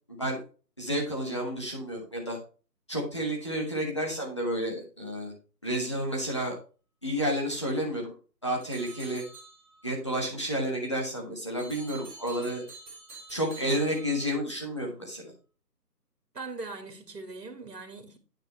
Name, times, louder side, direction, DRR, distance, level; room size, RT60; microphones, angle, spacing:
voice 1, 0.1-0.4 0.8-2.4 2.9-5.3 5.6-6.5 7.0-8.1 8.4-9.2 9.8-12.6 13.3-15.3, equal, 15° left, 1.3 m, -31 dB
sound 1, 8.6-9.9 11.6-14.6, right 3 dB, 5° right, 1.9 m, -48 dB
voice 2, 16.3-18.2, right 3 dB, 65° right, 2.2 m, -40 dB
9.2 x 5.0 x 4.2 m
figure-of-eight pair, 175°, 50 cm